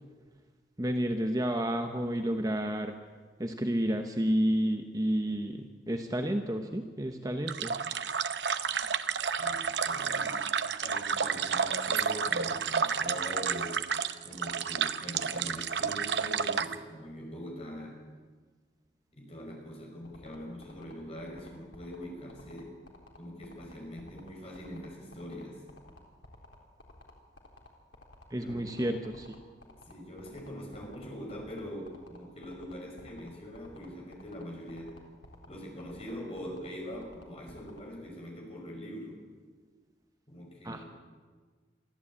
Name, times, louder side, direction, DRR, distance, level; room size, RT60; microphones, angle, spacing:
voice 1, 0.8-3.0 3.4-7.8 28.3-29.3 40.6-40.8, equal, 20° right, 5 dB, 1.0 m, -30 dB
sound 1, 7.5-16.7, right 6 dB, 75° right, 0.8 m, -31 dB
voice 2, 9.4-10.4 10.8-13.8 14.2-18.0 19.1-22.7 23.2-25.6 28.4-29.0 29.9-34.9 35.5-39.2 40.3-40.9, equal, 35° left, 0 dB, 5.7 m, -43 dB
sound 2, 20.0-37.8, left 2 dB, 90° left, 3.8 m, -53 dB
23.5 x 14.5 x 8.7 m, 1.5 s
head